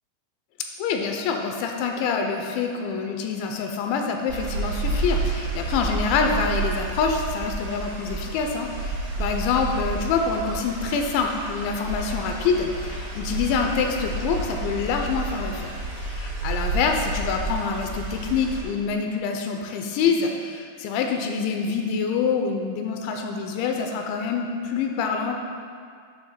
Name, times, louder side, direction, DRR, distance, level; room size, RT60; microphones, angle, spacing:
voice 1, 0.8-8.7 9.2-25.3, left 5 dB, 85° left, 3 dB, 2.8 m, -26 dB
sound 1, 4.3-18.6, right 2 dB, 65° right, 1.7 m, -30 dB
8.4 x 3.3 x 6.4 m, 2.2 s
omnidirectional pair, 5.3 m